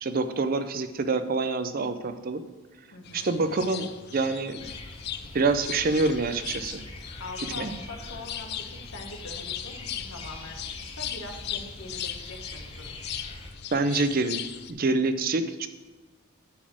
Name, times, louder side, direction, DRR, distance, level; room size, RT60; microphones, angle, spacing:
voice 1, 0.0-2.4 3.1-4.7 5.3-6.8 7.6-7.7 13.7-14.4 14.7-15.7, right 3 dB, 45° right, 10 dB, 0.5 m, -26 dB
voice 2, 2.9-3.3 7.2-12.9, left 2 dB, 75° left, 3 dB, 1.4 m, -43 dB
sound 1, 3.0-14.7, left 10 dB, 50° left, 0.4 m, -38 dB
sound 2, 4.6-13.5, left 1 dB, 25° left, 1.0 m, -44 dB
9.4 x 4.2 x 6.2 m, 1.3 s
head